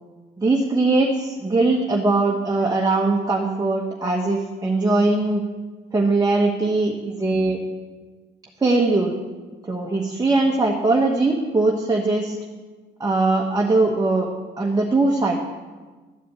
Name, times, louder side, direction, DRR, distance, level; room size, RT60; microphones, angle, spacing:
voice 1, 0.4-5.4 5.9-7.6 8.6-9.1 9.6-12.4 13.0-14.3 14.6-15.4, right 2 dB, 20° right, -1 dB, 1.3 m, -20 dB
12.5 x 4.9 x 8.4 m, 1.3 s
cardioid pair, 90°, 20 cm